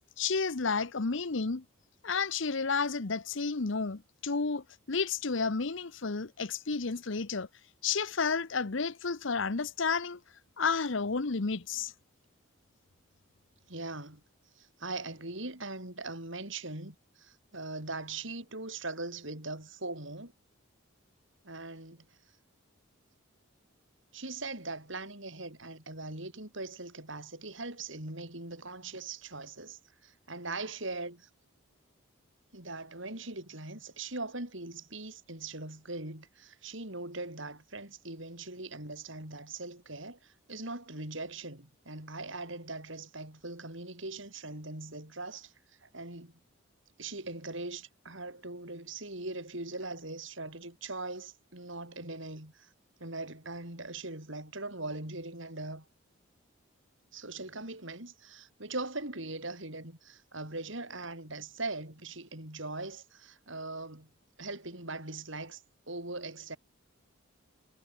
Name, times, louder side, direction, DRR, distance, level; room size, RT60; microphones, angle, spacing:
voice 1, 0.2-1.6 2.0-7.5 7.8-10.2 10.6-11.9, left 4 dB, 60° left, 0.9 m, -31 dB
voice 2, 13.7-14.2 14.6-20.3 21.4-22.0 24.1-31.3 32.5-46.4 47.0-52.7 53.0-55.9 57.1-64.1 64.4-66.6, right 2 dB, 60° right, 6.4 m, -41 dB
head